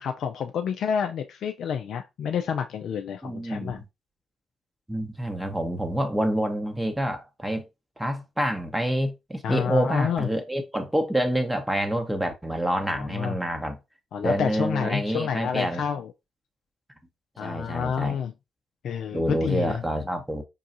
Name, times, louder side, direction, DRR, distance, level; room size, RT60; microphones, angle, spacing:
voice 1, 0.0-3.8 9.4-10.3 12.8-13.4 14.1-16.1 17.4-18.3 18.8-19.8, left 7 dB, 65° left, 0.3 m, -29 dB
voice 2, 3.2-3.8 4.9-7.6 8.0-13.8 14.2-15.8 17.4-18.2 19.1-20.4, right 1 dB, 10° right, 0.8 m, -27 dB
5.4 x 2.4 x 2.6 m
hypercardioid pair, 45°, 0 cm